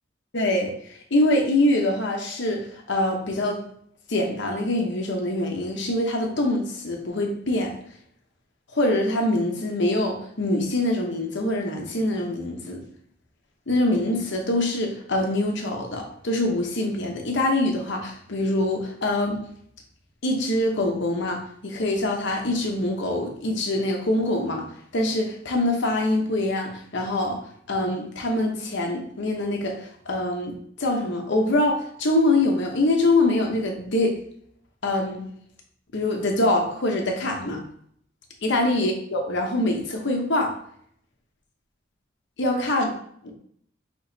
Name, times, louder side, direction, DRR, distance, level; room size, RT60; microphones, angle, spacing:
voice 1, 0.3-3.6 4.1-7.7 8.7-12.8 13.7-19.4 20.2-24.7 24.9-27.4 27.7-30.5 30.8-34.2 34.8-35.2 35.9-37.6 38.4-40.5 42.4-42.9 43.2-43.3, left 1 dB, 65° left, 2 dB, 1.0 m, -24 dB
6.2 x 3.0 x 2.8 m, 0.66 s
head